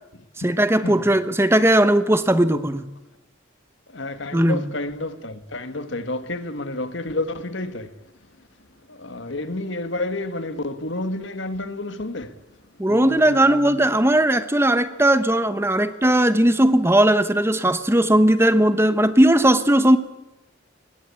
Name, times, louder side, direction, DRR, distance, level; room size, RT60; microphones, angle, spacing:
voice 1, 0.4-2.8 4.3-4.6 12.8-20.0, right 1 dB, 10° right, 1.0 m, -18 dB
voice 2, 3.9-7.9 8.9-12.4 12.9-13.8 15.8-15.9, left 2 dB, 65° left, 1.7 m, -30 dB
25.5 x 21.0 x 8.5 m
head